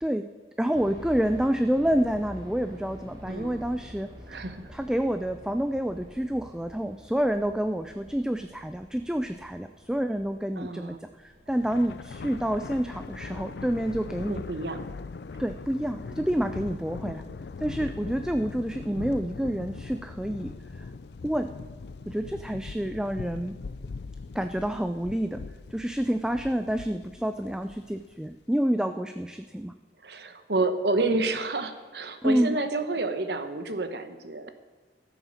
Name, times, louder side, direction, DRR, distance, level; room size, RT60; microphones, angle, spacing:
voice 1, 0.6-4.4 4.7-11.0 11.2-14.4 15.4-17.2 17.6-20.5 21.2-21.5 22.1-23.6 24.3-25.4 25.7-29.7 32.2-32.6, equal, 5° right, 8 dB, 0.4 m, -28 dB
sound 1, 0.7-15.6 15.9-16.0 16.6-16.9, equal, 25° right, 2.3 m, -48 dB
voice 2, 3.3-3.6 4.3-4.6 10.6-11.0 14.3-14.8 30.0-34.5, right 2 dB, 65° right, 9 dB, 1.1 m, -29 dB
Thunder, 11.5-28.1, left 4 dB, 65° left, 0.5 m, -40 dB
13.5 x 7.9 x 6.4 m, 1.5 s
head